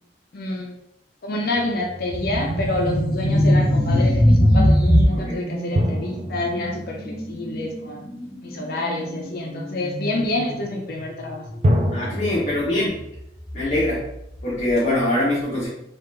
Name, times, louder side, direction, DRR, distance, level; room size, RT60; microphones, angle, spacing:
voice 1, 0.3-0.7 1.2-8.0 8.4-11.4, left 2 dB, 55° left, 1 dB, 0.6 m, -28 dB
sound 1, 1.5-2.9 5.7-8.3 11.6-12.6, equal, 35° right, 0.5 m, -26 dB
sound 2, 2.1-12.1 12.4-12.6 13.4-14.4, equal, 10° right, 1.1 m, -22 dB
voice 2, 11.9-13.1 13.5-14.0 14.4-15.7, left 1 dB, 40° left, -8 dB, 1.0 m, -23 dB
3.7 x 2.4 x 3.3 m, 0.81 s
head